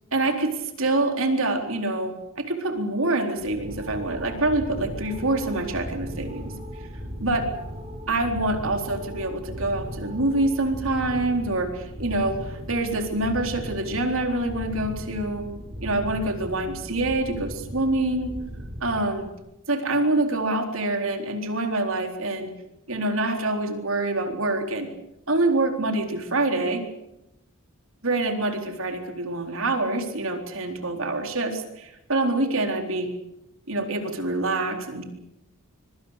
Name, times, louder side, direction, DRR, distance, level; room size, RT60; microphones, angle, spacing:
voice 1, 0.1-6.6 7.2-7.5 8.1-15.5 15.8-18.3 18.8-19.3 19.7-22.5 22.9-24.9 25.3-26.9 28.0-33.1 33.7-35.0, right 2 dB, 65° right, 5 dB, 4.0 m, -26 dB
sound 1, 3.4-19.4, equal, 30° right, 6.3 m, -37 dB
25.0 x 24.0 x 6.7 m, 0.87 s
head